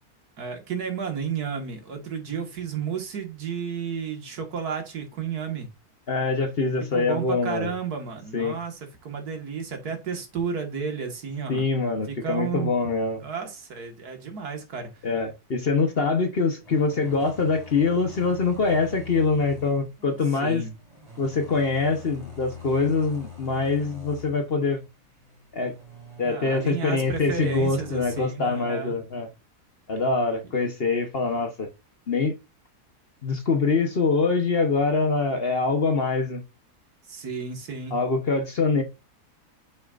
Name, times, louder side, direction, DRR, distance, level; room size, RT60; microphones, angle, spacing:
voice 1, 0.4-5.7 6.9-11.6 12.1-12.7 13.2-14.9 20.4-20.7 26.2-28.9 37.1-38.0, right 6 dB, 75° right, 2.2 m, -32 dB
voice 2, 6.1-7.7 8.3-8.6 11.5-13.2 15.0-20.6 21.2-24.8 25.5-25.7 26.2-29.3 29.9-31.7 32.1-32.4 33.2-36.4 37.9-38.8, left 4 dB, 45° left, 1.1 m, -24 dB
sound 1, 16.6-28.3, left 5 dB, 20° left, 3.6 m, -45 dB
8.0 x 6.3 x 2.5 m
omnidirectional pair, 1.7 m